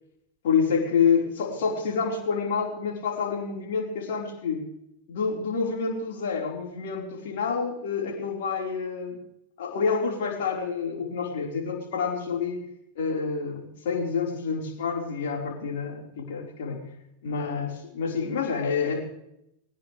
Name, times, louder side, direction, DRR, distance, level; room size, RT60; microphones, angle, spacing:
voice 1, 0.4-4.6 5.1-9.2 9.6-12.6 13.0-16.8 17.2-19.0, left 5 dB, 55° left, -1 dB, 4.5 m, -28 dB
21.5 x 19.0 x 3.4 m, 0.83 s
figure-of-eight pair, 90°, 0 cm